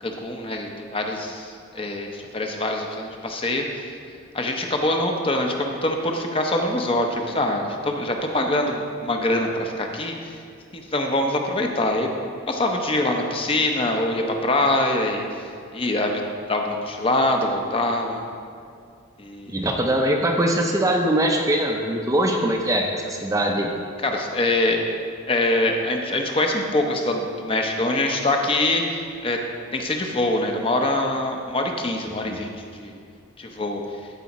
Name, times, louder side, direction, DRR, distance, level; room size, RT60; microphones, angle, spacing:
voice 1, 0.0-3.9 4.3-10.4 10.7-12.1 12.5-18.3 19.2-19.7 24.0-24.9 25.3-29.4 29.7-33.0 33.4-33.8, left 1 dB, 25° left, 2 dB, 0.6 m, -24 dB
voice 2, 19.5-23.7 32.3-32.4, right 1 dB, 15° right, 1 dB, 0.5 m, -22 dB
13.5 x 4.8 x 4.1 m, 2.3 s
head